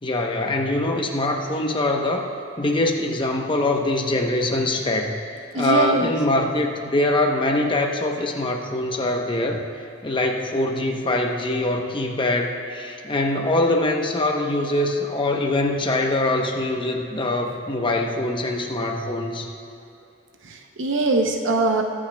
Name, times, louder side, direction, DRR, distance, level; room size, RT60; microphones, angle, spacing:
voice 1, 0.0-2.3 2.6-5.1 5.5-9.6 10.0-19.5, left 2 dB, 25° left, 2 dB, 0.9 m, -23 dB
voice 2, 5.5-6.1 20.4-21.8, right 3 dB, 70° right, 3 dB, 0.8 m, -22 dB
22.5 x 8.7 x 2.3 m, 2.7 s
head